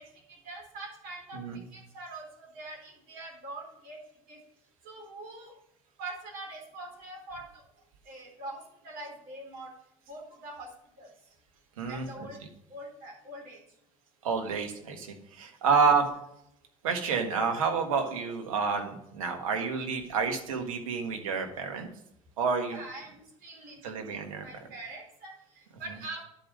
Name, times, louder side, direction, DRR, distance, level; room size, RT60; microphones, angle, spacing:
voice 1, 0.0-1.4 1.7-4.0 4.3-4.4 4.8-5.6 6.0-7.6 8.0-9.7 10.1-10.7 11.0-11.1 11.9-12.4 12.7-13.6 22.7-26.2, right 2 dB, 60° right, -1 dB, 4.3 m, -44 dB
voice 2, 1.3-1.6 11.8-12.3 14.2-16.1 16.8-21.9 22.4-22.8 23.8-24.4, right 5 dB, 85° right, 5 dB, 1.7 m, -29 dB
11.0 x 5.3 x 6.3 m, 0.76 s
hypercardioid pair, 70°, 17 cm